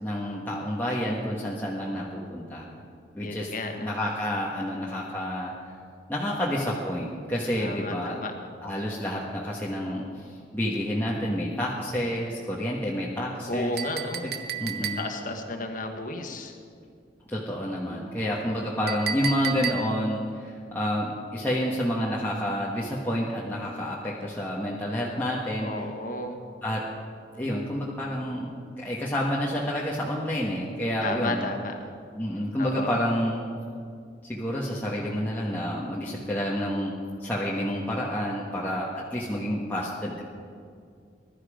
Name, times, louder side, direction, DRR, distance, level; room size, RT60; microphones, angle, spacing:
voice 1, 0.0-2.7 3.1-3.5 3.8-5.5 6.1-8.2 8.6-13.7 14.2-14.3 14.6-15.0 17.3-25.8 26.6-26.8 27.4-31.5 32.1-33.4 34.2-36.9 37.2-40.2, equal, 10° left, -6 dB, 1.5 m, -29 dB
voice 2, 3.2-3.9 7.6-8.3 13.5-14.3 15.0-16.6 25.6-26.4 31.0-31.8 32.6-32.9, left 2 dB, 45° left, 4 dB, 1.6 m, -33 dB
Chink clink, 13.8-15.4 18.9-20.2, right 7 dB, 60° right, 0.9 m, -33 dB
20.5 x 12.5 x 5.1 m, 2.2 s
head